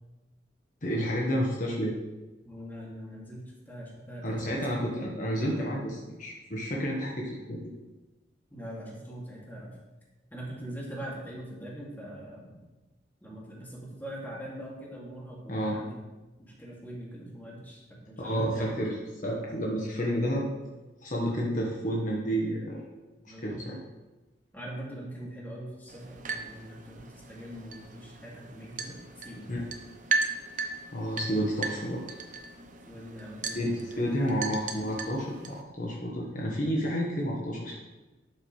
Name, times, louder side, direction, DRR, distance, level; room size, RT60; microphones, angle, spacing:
voice 1, 0.8-1.9 4.2-7.6 15.5-15.8 18.2-19.0 19.2-20.5 21.0-22.8 23.2-23.8 29.5-29.9 30.9-32.0 33.5-37.8, equal, 45° left, -3 dB, 1.4 m, -30 dB
voice 2, 2.4-4.9 5.4-5.7 8.5-9.8 10.3-12.6 13.2-16.0 16.4-18.8 23.3-23.6 24.5-29.0 29.2-29.4 32.9-33.9 34.2-34.4, right 1 dB, 10° left, -5 dB, 2.3 m, -42 dB
sound 1, 25.9-35.6, right 4 dB, 45° right, 0.8 m, -37 dB
11.5 x 6.5 x 3.3 m, 1.1 s
head